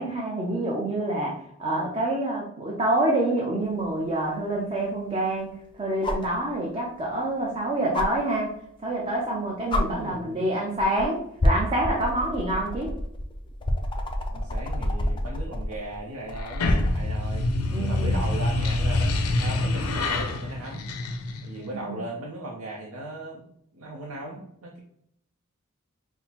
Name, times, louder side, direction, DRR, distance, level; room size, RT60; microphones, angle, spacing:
voice 1, 0.0-5.5 5.8-8.5 8.8-12.9 17.7-18.3 21.6-22.0, right 1 dB, 25° right, -3 dB, 0.6 m, -27 dB
sound 1, 3.8-3.9 6.0-6.3 7.9-8.1 9.2-9.3 9.7-9.8 10.8-11.0 11.4-17.1 18.7-18.8, left 1 dB, 20° left, 0.4 m, -27 dB
voice 2, 9.9-10.5 14.3-17.5 17.7-20.9 21.4-23.4 23.7-24.8, right 1 dB, 70° right, -2 dB, 0.6 m, -37 dB
sound 2, 16.4-21.7, left 2 dB, 85° left, 0.5 m, -26 dB
5.5 x 2.0 x 2.9 m, 0.72 s
head